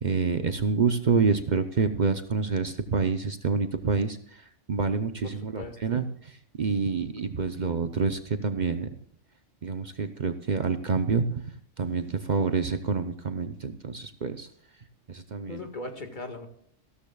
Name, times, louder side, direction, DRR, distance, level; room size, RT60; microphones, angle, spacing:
voice 1, 0.0-4.2 4.7-6.0 6.6-8.9 9.6-11.5 11.8-14.5 15.1-15.6, right 5 dB, 45° right, 9 dB, 0.8 m, -27 dB
voice 2, 5.2-6.1 15.5-16.5, left 2 dB, 40° left, 5 dB, 1.9 m, -39 dB
15.5 x 13.5 x 2.3 m, 0.68 s
omnidirectional pair, 1.3 m